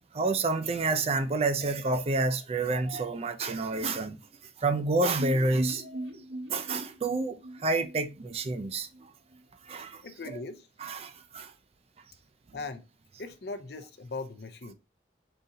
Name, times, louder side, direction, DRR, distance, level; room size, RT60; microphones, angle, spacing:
voice 1, 0.1-4.2 4.6-6.1 6.5-9.1 9.6-10.0 10.8-11.5, right 3 dB, 35° right, 0.4 m, -29 dB
sound 1, 5.2-9.0 9.3-9.4 9.7-9.8, right 1 dB, 85° right, 1.2 m, -39 dB
voice 2, 10.0-10.7 12.5-12.9 13.2-14.7, left 3 dB, 60° left, 0.6 m, -39 dB
3.9 x 2.7 x 3.9 m
head